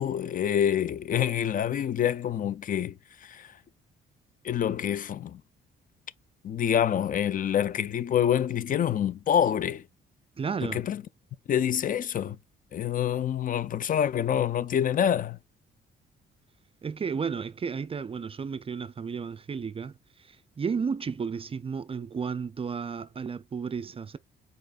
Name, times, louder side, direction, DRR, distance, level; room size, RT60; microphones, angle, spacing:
voice 1, 0.0-2.9 3.2-3.5 4.4-5.4 6.4-9.8 10.6-11.0 11.5-12.4 12.7-15.4, left 9 dB, 45° left, 0.4 m, -26 dB
voice 2, 10.4-10.9 16.8-19.9 20.2-24.2, right 6 dB, 30° right, 0.4 m, -33 dB
5.1 x 4.2 x 2.4 m
cardioid pair, 90°, 20 cm